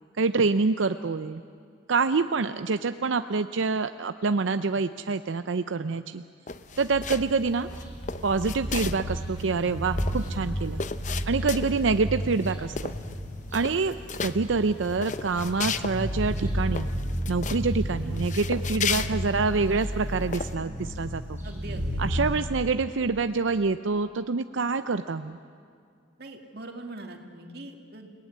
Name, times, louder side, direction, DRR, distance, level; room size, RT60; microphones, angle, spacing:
voice 1, 0.2-1.4 1.9-6.2 6.8-7.7 8.2-10.8 11.3-13.0 13.5-14.0 14.2-16.9 17.3-21.4 22.0-25.4, right 4 dB, 90° right, 10 dB, 0.6 m, -26 dB
sound 1, 6.5-7.4 7.7-9.1 9.4-9.5 9.7-11.9 12.3-12.5 12.8-13.2 13.5-14.3 14.8-16.0 16.3-16.4 16.7-17.6 18.1-19.9 20.3-20.5, left 6 dB, 40° left, 0.8 m, -34 dB
sound 2, 6.6-22.3, equal, 15° right, 7.0 m, -33 dB
voice 2, 21.4-22.0 26.2-28.1, right 2 dB, 55° right, 3 dB, 2.5 m, -42 dB
30.0 x 18.5 x 9.6 m, 2.3 s
head